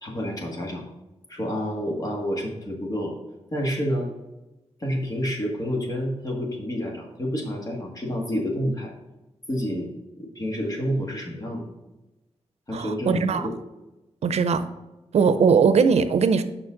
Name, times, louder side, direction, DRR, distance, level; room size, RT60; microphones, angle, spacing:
voice 1, 0.0-0.8 1.3-3.2 3.5-4.1 4.8-8.9 9.5-11.6 12.7-13.6, equal, 35° left, -1 dB, 1.8 m, -29 dB
voice 2, 12.7-13.4 14.2-14.7 15.1-16.4, right 5 dB, 85° right, 11 dB, 0.5 m, -20 dB
7.1 x 5.6 x 3.8 m, 1.1 s
wide cardioid pair, 130°, 11 cm